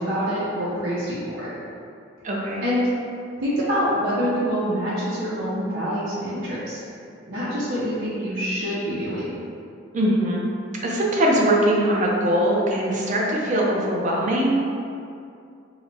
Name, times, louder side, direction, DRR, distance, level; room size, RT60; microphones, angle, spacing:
voice 1, 0.0-1.5 2.6-2.8 3.4-6.8 7.3-9.3, equal, 90° right, -10 dB, 0.8 m, -26 dB
voice 2, 2.2-2.6 9.9-10.4 10.8-14.6, right 1 dB, 40° right, -2 dB, 0.5 m, -21 dB
4.6 x 2.1 x 3.4 m, 2.4 s
head